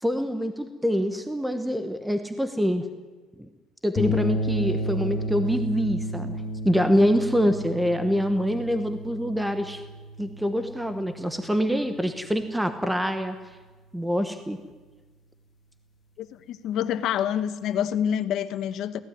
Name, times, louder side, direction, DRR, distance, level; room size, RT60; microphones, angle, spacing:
voice 1, 0.0-2.8 3.4-3.5 3.8-6.4 6.6-9.8 10.2-13.4 13.9-14.6, equal, 5° right, 8 dB, 1.1 m, -25 dB
sound 1, 4.0-12.4, left 1 dB, 25° left, 1.9 m, -32 dB
voice 2, 16.2-19.0, left 9 dB, 55° left, 11 dB, 1.3 m, -27 dB
24.0 x 17.5 x 9.5 m, 1.3 s
cardioid pair, 160°, 0 cm